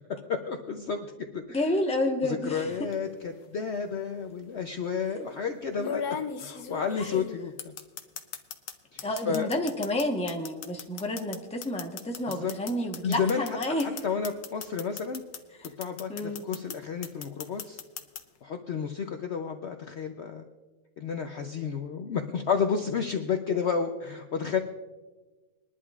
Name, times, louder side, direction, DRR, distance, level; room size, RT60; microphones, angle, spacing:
voice 1, 0.1-1.1 1.3-1.6 2.2-6.0 6.4-7.7 8.9-9.5 12.3-12.5 13.0-13.5 13.8-15.2 15.6-17.8 18.4-20.4 21.0-24.6, left 6 dB, 55° left, 5 dB, 0.8 m, -31 dB
voice 2, 1.5-2.7 7.0-7.1 9.0-14.0 16.1-16.4, left 1 dB, 5° left, 1 dB, 0.9 m, -30 dB
sound 1, 2.6-2.9 4.1-4.2 5.8-8.7 9.0-15.4 15.6-16.8 17.0-18.2, left 6 dB, 85° left, 1.4 m, -37 dB
22.0 x 11.0 x 2.4 m, 1.3 s
omnidirectional pair, 1.6 m